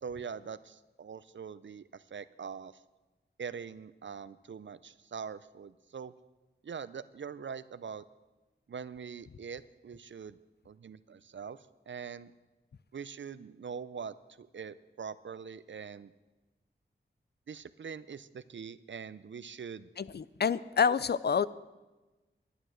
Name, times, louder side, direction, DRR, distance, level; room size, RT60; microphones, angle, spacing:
voice 1, 0.0-2.8 3.4-6.1 6.6-8.0 8.7-10.4 10.7-12.3 12.9-16.1 17.5-19.9, right 6 dB, 70° right, 16 dB, 0.5 m, -43 dB
voice 2, 20.0-21.5, left 6 dB, 55° left, 18 dB, 0.4 m, -28 dB
11.5 x 10.0 x 6.4 m, 1.1 s
wide cardioid pair, 70°, 20 cm